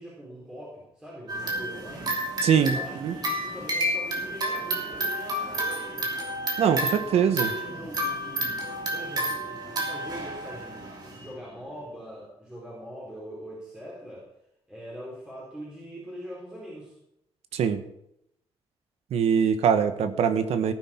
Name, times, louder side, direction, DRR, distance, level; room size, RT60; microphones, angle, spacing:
voice 1, 0.0-6.1 6.8-10.9 11.1-14.3 14.7-17.0, equal, 10° right, -7 dB, 4.2 m, -42 dB
sound 1, 1.3-11.3, right 1 dB, 40° right, 3.2 m, -31 dB
voice 2, 2.4-3.1 6.6-7.5 17.5-17.8 19.1-20.7, right 7 dB, 90° right, 10 dB, 1.3 m, -23 dB
17.5 x 10.0 x 4.5 m, 0.80 s
wide cardioid pair, 165°, 10 cm